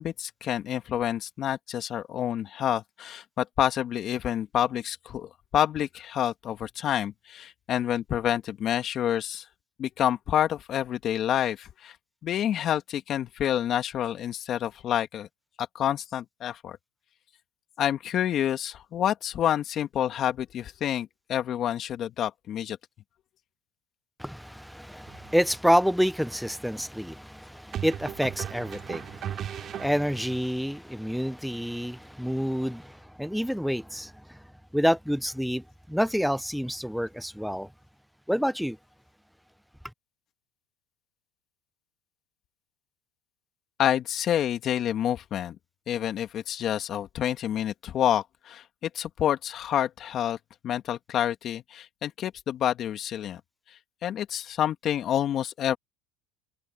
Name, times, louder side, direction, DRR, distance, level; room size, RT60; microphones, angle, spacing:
voice 1, 0.0-9.5 9.8-12.0 12.2-15.3 15.6-16.8 17.8-22.8 43.8-45.6 45.9-50.4 50.6-53.4 54.0-55.8, left 10 dB, 45° left, 2.3 m, -28 dB
voice 2, 24.2-34.4 34.7-37.7 38.3-38.8, equal, ahead, 0.6 m, -28 dB
sound 1, 25.1-25.3 27.7-30.4, right 10 dB, 40° right, 3.9 m, -37 dB
supercardioid pair, 100°, 0 cm